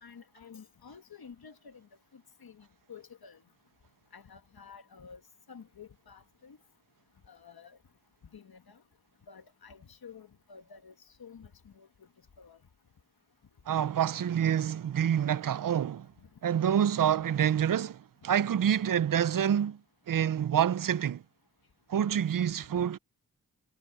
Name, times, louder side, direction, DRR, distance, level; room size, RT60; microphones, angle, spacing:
voice 1, 0.0-3.4 4.1-5.2 5.5-6.6 7.3-7.8 8.3-8.8 9.3-10.9 11.2-11.9 12.4-12.6, left 6 dB, 80° left, 1.7 m, -51 dB
voice 2, 13.7-16.1 16.4-19.8 20.1-21.2 21.9-23.0, right 9 dB, 65° right, 0.5 m, -27 dB
wide cardioid pair, 65°, 36 cm